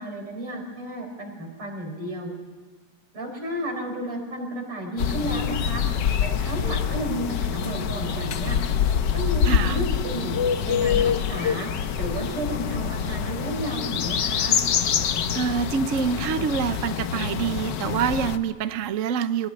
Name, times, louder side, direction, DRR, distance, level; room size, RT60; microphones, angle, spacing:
voice 1, 0.0-2.3 3.1-5.8 6.2-8.6 9.1-10.4 10.6-11.7 11.9-14.6, right 1 dB, 80° right, 2 dB, 5.7 m, -32 dB
sound 1, 5.0-18.4, left 8 dB, 60° left, 1.5 m, -25 dB
voice 2, 9.5-9.8 15.3-19.5, right 7 dB, 55° right, 11 dB, 0.9 m, -26 dB
23.5 x 19.5 x 10.0 m, 1.4 s
omnidirectional pair, 2.4 m